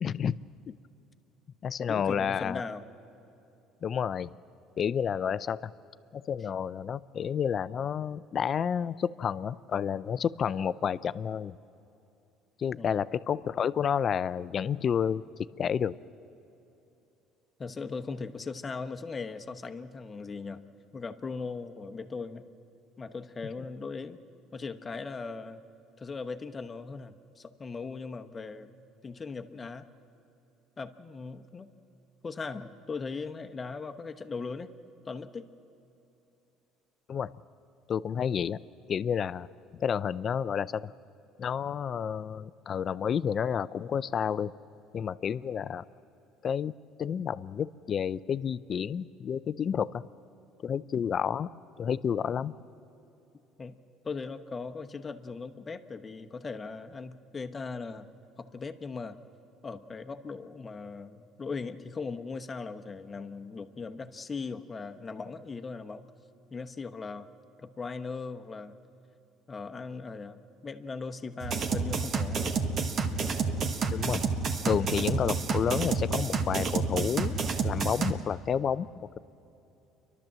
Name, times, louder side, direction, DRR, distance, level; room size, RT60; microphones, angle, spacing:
voice 1, 0.0-0.3 0.7-0.8 1.6-2.6 3.8-4.3 4.8-5.7 6.1-11.6 12.6-16.0 37.1-37.3 37.9-38.6 38.9-39.5 39.7-40.9 41.4-44.5 44.9-45.8 46.4-50.0 50.6-51.5 51.8-52.5 73.9-74.2 74.6-78.9, left 8 dB, 40° left, 17 dB, 0.5 m, -30 dB
voice 2, 1.9-2.9 12.8-13.1 17.6-20.6 20.9-22.5 23.0-24.2 24.5-25.6 26.0-28.8 29.0-29.9 30.8-31.7 32.2-34.7 35.1-35.5 52.4-52.5 53.6-53.8 54.0-58.1 58.4-59.2 59.6-66.1 66.5-67.3 67.6-68.8 69.5-72.6, left 4 dB, 25° left, 7 dB, 1.0 m, -39 dB
sound 1, 71.4-78.1, right 4 dB, 50° right, 1.4 m, -29 dB
29.5 x 12.0 x 7.5 m, 2.9 s
supercardioid pair, 105°, 0 cm